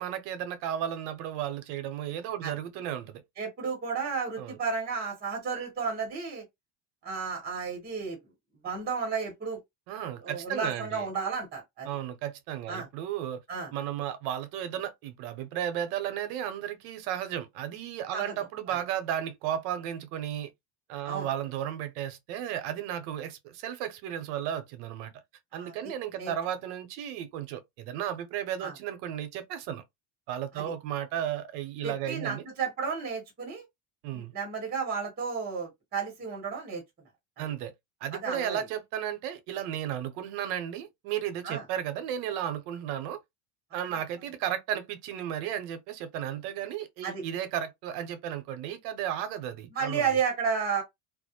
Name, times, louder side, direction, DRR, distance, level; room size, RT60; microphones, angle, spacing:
voice 1, 0.0-3.2 4.4-4.6 9.9-11.0 11.8-13.4 13.7-20.5 20.9-25.1 25.5-29.8 30.3-32.4 34.0-34.3 37.4-37.7 38.0-43.2 43.7-50.0, right 10 dB, 80° right, 0.7 m, -34 dB
voice 2, 3.4-6.4 7.0-8.2 8.6-9.6 10.2-11.9 12.7-12.9 13.5-13.7 18.1-18.3 18.7-18.8 21.1-21.3 25.5-25.9 26.2-26.3 28.6-28.7 30.5-30.6 31.8-33.6 34.1-36.8 38.1-38.6 41.4-41.6 47.0-47.2 49.7-50.8, right 5 dB, 20° right, 0.9 m, -32 dB
2.3 x 2.0 x 2.8 m
cardioid pair, 135°, 45 cm